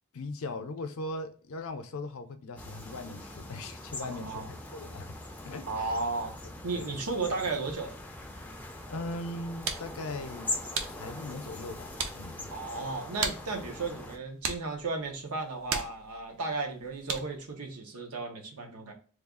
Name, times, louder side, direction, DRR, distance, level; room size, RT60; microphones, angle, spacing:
voice 1, 0.1-5.2 5.4-5.9 6.7-7.0 8.9-10.5 10.9-12.5, left 2 dB, 70° left, 0.5 m, -39 dB
sound 1, 2.6-14.2, left 2 dB, 5° left, 0.4 m, -42 dB
voice 2, 4.0-4.5 5.7-6.4 6.6-8.0 12.5-18.9, right 3 dB, 85° right, 0.8 m, -34 dB
sound 2, 9.2-17.5, right 5 dB, 65° right, 0.5 m, -39 dB
3.2 x 2.3 x 3.6 m
head